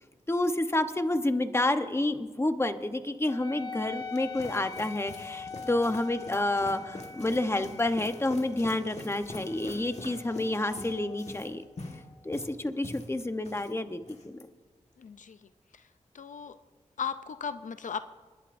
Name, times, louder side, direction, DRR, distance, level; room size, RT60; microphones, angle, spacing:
voice 1, 0.3-11.6 12.2-14.5, left 2 dB, 20° left, 8 dB, 0.9 m, -29 dB
Wind instrument woodwind instrument, 3.3-12.2, left 5 dB, 40° left, 1.3 m, -44 dB
sound 1, 3.8-13.7 14.0-14.4, left 2 dB, 60° left, 1.7 m, -44 dB
voice 2, 15.0-15.9 16.1-16.6 17.0-18.1, left 6 dB, 80° left, 11 dB, 0.5 m, -37 dB
29.0 x 11.5 x 2.6 m, 1.4 s
wide cardioid pair, 65°, 13 cm